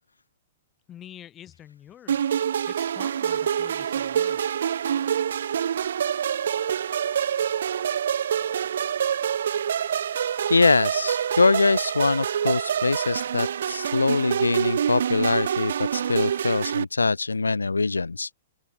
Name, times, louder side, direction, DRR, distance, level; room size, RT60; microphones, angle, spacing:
voice 1, 0.9-2.2 2.7-4.4, left 11 dB, 25° left, 7.7 m, -46 dB
sound 1, 2.1-16.8, right 8 dB, 70° right, 4.0 m, -26 dB
voice 2, 10.5-18.3, left 3 dB, 90° left, 0.5 m, -23 dB
open air
hypercardioid pair, 115°, 0 cm